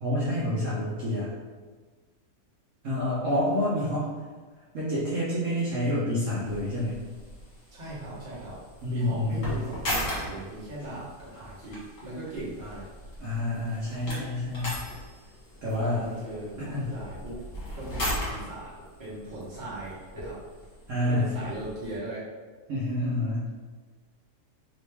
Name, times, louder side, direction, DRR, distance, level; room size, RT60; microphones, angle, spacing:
voice 1, 0.0-1.3 2.8-4.0 4.7-6.9 8.8-9.6 13.2-14.8 15.6-16.1 16.6-17.0 20.9-21.3 22.7-23.5, left 1 dB, 60° right, -9 dB, 1.1 m, -28 dB
sound 1, 6.4-22.0, left 1 dB, 60° left, 1.6 m, -38 dB
voice 2, 7.7-8.6 8.9-12.8 15.9-16.6 16.9-17.4 17.7-18.7 19.0-20.4 21.0-22.2, right 1 dB, 35° right, -8 dB, 1.2 m, -38 dB
3.2 x 2.9 x 3.3 m, 1.4 s
omnidirectional pair, 1.6 m